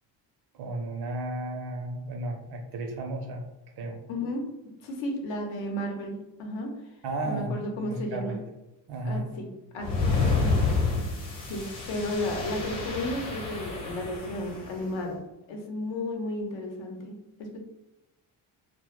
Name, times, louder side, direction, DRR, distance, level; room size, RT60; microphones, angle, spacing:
voice 1, 0.5-3.4 3.8-4.0 7.0-8.4 8.9-9.3, right 2 dB, 55° right, 3 dB, 0.6 m, -33 dB
voice 2, 4.1-4.5 4.8-6.7 7.2-8.4 9.0-11.1 11.5-15.2 15.5-17.6, left 1 dB, 70° left, 2 dB, 0.7 m, -34 dB
sound 1, 9.8-14.7, left 4 dB, 40° left, 0.9 m, -29 dB
2.1 x 2.0 x 2.9 m, 0.99 s
cardioid pair, 115°, 47 cm